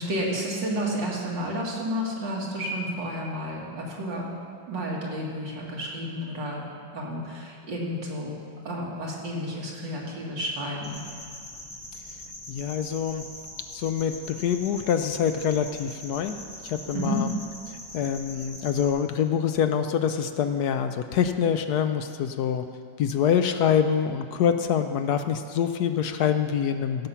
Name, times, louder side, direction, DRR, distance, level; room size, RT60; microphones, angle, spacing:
voice 1, 0.0-4.3 4.7-6.6 6.9-8.4 8.6-11.0 16.9-17.2, equal, 85° right, -3 dB, 2.7 m, -31 dB
sound 1, 10.8-18.9, left 1 dB, 55° left, 3.4 m, -42 dB
voice 2, 12.5-13.2 13.7-16.4 16.6-17.3 17.7-22.6 23.0-27.1, left 8 dB, 70° left, 8 dB, 1.0 m, -25 dB
15.5 x 7.3 x 5.6 m, 2.2 s
omnidirectional pair, 1.9 m